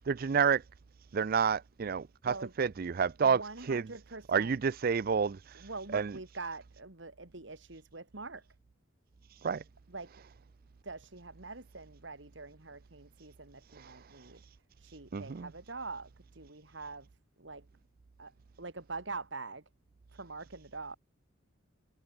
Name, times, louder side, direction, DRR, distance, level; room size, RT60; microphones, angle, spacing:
voice 1, 0.1-0.6 1.1-3.4 3.7-3.9 4.3-5.4 5.9-6.2 9.4-9.6 13.8-13.9 15.1-15.5, right 6 dB, 50° right, 0.4 m, -29 dB
voice 2, 3.2-4.5 5.5-8.4 9.9-10.1 10.8-14.4 14.8-17.1 17.4-17.6 18.2-18.3 18.6-19.6 20.1-21.0, right 3 dB, 65° right, 2.6 m, -44 dB
head